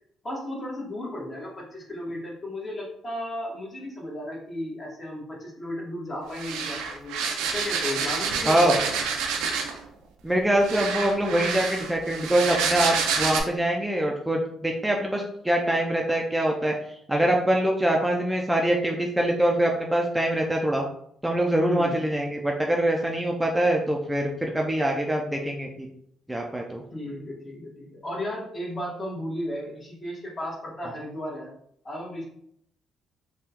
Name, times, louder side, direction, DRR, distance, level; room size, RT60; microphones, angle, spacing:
voice 1, 0.2-7.1 7.5-8.8 21.6-22.0 24.5-24.6 26.9-31.5 31.8-32.2, left 1 dB, 35° left, -3 dB, 1.5 m, -34 dB
sound 1, 6.3-9.8 10.6-13.4, right 6 dB, 85° right, 0.5 m, -28 dB
voice 2, 8.4-8.8 10.2-16.7 17.1-20.8 21.2-25.9 26.3-26.8, right 1 dB, 10° right, 0 dB, 0.5 m, -24 dB
3.5 x 2.3 x 2.9 m, 0.70 s
supercardioid pair, 60°, 0 cm